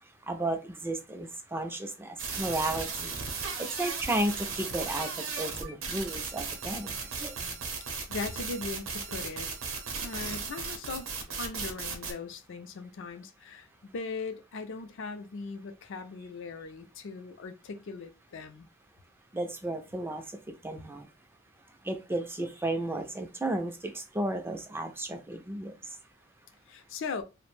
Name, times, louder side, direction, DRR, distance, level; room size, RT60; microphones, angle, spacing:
voice 1, 0.2-3.1 3.6-7.3 19.3-20.2 20.6-21.1 21.8-25.7, right 1 dB, 10° right, 0.3 m, -33 dB
sound 1, 2.2-12.1, right 5 dB, 75° right, 0.7 m, -36 dB
voice 2, 7.4-7.7 8.1-9.5 10.0-11.1 11.4-18.7 26.7-27.2, left 4 dB, 65° left, 0.4 m, -39 dB
2.4 x 2.1 x 3.1 m
head